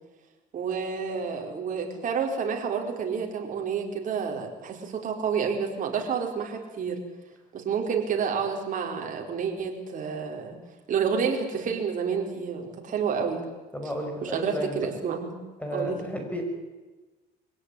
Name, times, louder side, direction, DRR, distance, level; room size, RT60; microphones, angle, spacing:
voice 1, 0.5-7.0 7.5-10.6 10.9-13.4 14.2-15.3 15.7-16.0, right 6 dB, 50° right, 2 dB, 4.7 m, -29 dB
voice 2, 13.7-14.8 15.6-16.4, equal, 10° left, 3 dB, 5.7 m, -33 dB
23.0 x 17.0 x 10.0 m, 1.2 s
cardioid pair, 110°, 17 cm